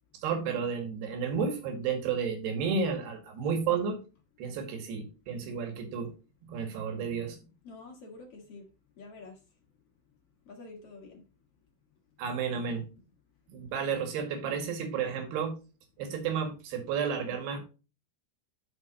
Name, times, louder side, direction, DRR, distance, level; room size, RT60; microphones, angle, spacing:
voice 1, 0.2-4.0 4.4-6.1 6.4-7.4 12.2-12.8 13.5-15.5 16.0-17.6, right 6 dB, 65° right, 3.8 m, -32 dB
voice 2, 7.6-8.6 9.0-9.4 10.5-11.2, left 3 dB, 50° left, 1.8 m, -47 dB
11.5 x 5.8 x 2.9 m
omnidirectional pair, 5.3 m